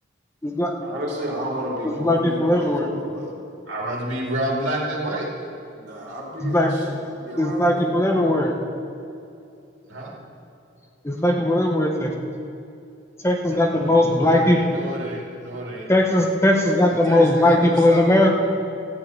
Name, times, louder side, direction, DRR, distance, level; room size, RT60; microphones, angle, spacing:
voice 1, 0.8-3.3 5.7-8.0, equal, 55° right, -4 dB, 3.3 m, -32 dB
voice 2, 2.0-2.9 6.4-6.7 7.4-8.5 11.0-12.1 13.2-14.6 15.9-18.3, left 1 dB, 15° left, 1 dB, 0.8 m, -19 dB
voice 3, 3.7-5.3 9.9-10.1 13.7-15.9 17.1-17.6 17.9-18.0, right 1 dB, 80° right, -3 dB, 2.7 m, -29 dB
14.0 x 5.6 x 8.7 m, 2.7 s
head